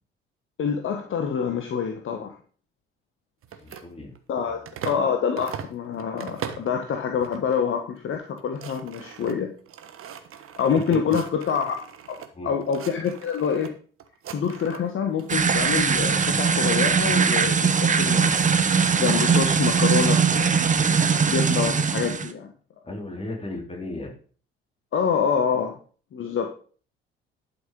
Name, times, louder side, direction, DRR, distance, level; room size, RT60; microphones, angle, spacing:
voice 1, 0.6-2.3 4.3-9.5 10.6-11.8 12.1-12.2 12.4-13.7 14.3-18.4 18.9-20.6 21.1-22.5 24.9-25.7 26.1-26.5, left 7 dB, 45° left, 5 dB, 1.5 m, -26 dB
sound 1, 3.4-5.1 5.4-6.8 7.2-7.6 8.0-8.1 8.3-12.3 12.6-13.7 14.0-14.9 15.2-17.0 17.8-19.6, right 8 dB, 45° right, 1.4 m, -41 dB
voice 2, 3.6-4.1 4.5-4.9 10.9-11.2 12.3-12.5 22.8-24.1, left 2 dB, 20° left, 1 dB, 4.3 m, -36 dB
sound 2, 15.3-22.3, right 5 dB, 25° right, 1.1 m, -21 dB
11.5 x 6.2 x 5.3 m, 0.42 s
figure-of-eight pair, 50°, 30 cm